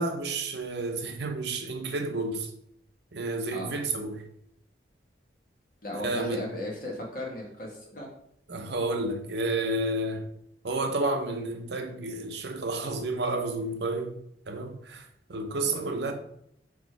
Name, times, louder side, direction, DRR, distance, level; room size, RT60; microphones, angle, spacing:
voice 1, 0.0-2.5 3.1-4.2 6.0-6.5 8.5-10.3 10.6-14.2 14.5-16.1, right 2 dB, 65° right, 4 dB, 0.8 m, -31 dB
voice 2, 5.8-8.1 15.6-16.0, left 1 dB, 50° left, -1 dB, 1.7 m, -36 dB
4.9 x 4.2 x 4.7 m, 0.71 s
head